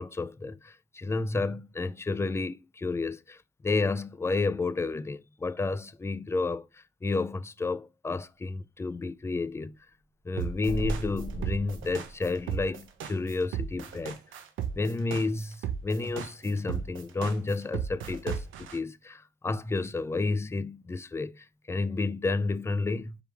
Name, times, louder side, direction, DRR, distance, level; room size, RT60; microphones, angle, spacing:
voice 1, 0.0-3.4 3.6-6.7 7.0-9.8 10.3-14.2 14.7-23.2, left 3 dB, 15° left, 0.3 m, -31 dB
sound 1, 10.4-18.8, right 8 dB, 80° right, 0.9 m, -34 dB
sound 2, 10.7-12.9, right 2 dB, 40° right, 1.3 m, -36 dB
4.5 x 3.5 x 3.3 m
cardioid pair, 90°, 20 cm